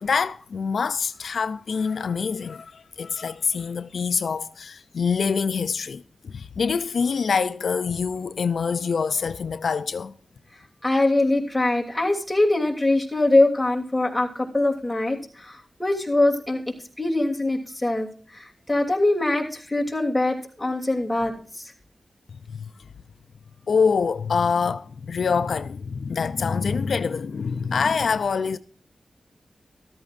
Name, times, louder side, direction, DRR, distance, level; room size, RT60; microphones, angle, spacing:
voice 1, 0.0-10.1 22.5-22.7 23.7-28.6, left 5 dB, 85° left, 0.4 m, -25 dB
voice 2, 10.8-16.6 17.0-21.6, left 2 dB, 15° left, 2.9 m, -23 dB
13.5 x 13.5 x 2.5 m
wide cardioid pair, 70°, 0 cm